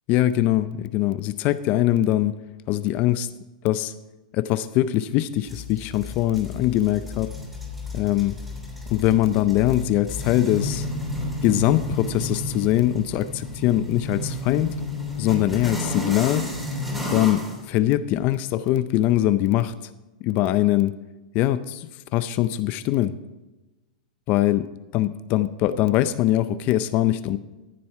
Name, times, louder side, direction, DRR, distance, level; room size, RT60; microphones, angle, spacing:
voice 1, 0.1-2.4 2.7-3.3 3.6-3.9 4.3-7.3 7.9-8.4 8.9-10.9 11.4-14.7 15.2-16.5 17.1-19.7 20.2-21.0 21.3-23.2 24.3-27.4, left 14 dB, 35° left, 13 dB, 0.5 m, -22 dB
sound 1, 5.5-17.6, left 2 dB, 5° right, 2.9 m, -32 dB
14.0 x 7.5 x 4.7 m, 1.1 s
hypercardioid pair, 145°, 4 cm